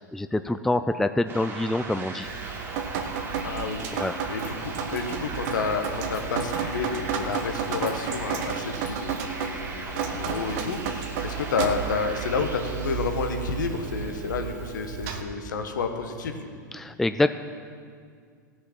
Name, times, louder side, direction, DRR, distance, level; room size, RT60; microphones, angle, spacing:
voice 1, 0.0-2.3 3.9-4.2 16.7-17.4, left 2 dB, 5° left, 10 dB, 0.3 m, -26 dB
sound 1, 1.3-15.0, right 3 dB, 25° right, 2.3 m, -39 dB
Drip, 2.2-15.2, right 7 dB, 50° right, 1.1 m, -32 dB
voice 2, 3.4-16.5, left 5 dB, 70° left, 6 dB, 1.2 m, -30 dB
16.5 x 6.3 x 6.0 m, 2.1 s
figure-of-eight pair, 95°, 10 cm